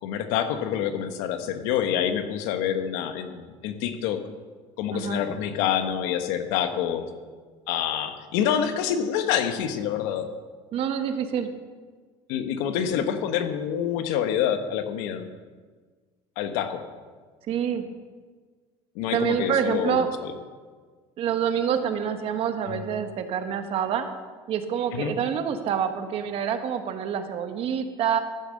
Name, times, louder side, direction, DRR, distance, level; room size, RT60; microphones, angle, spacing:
voice 1, 0.0-4.2 4.8-7.1 7.7-10.2 12.3-15.3 16.4-16.8 18.9-20.3 22.7-22.8 24.9-25.1, left 9 dB, 80° left, 8 dB, 1.2 m, -27 dB
voice 2, 4.9-5.2 10.7-11.5 17.5-17.8 19.1-20.1 21.2-24.1 24.5-28.2, right 8 dB, 50° right, 7 dB, 1.3 m, -27 dB
14.5 x 7.0 x 6.5 m, 1.5 s
cardioid pair, 130°, 12 cm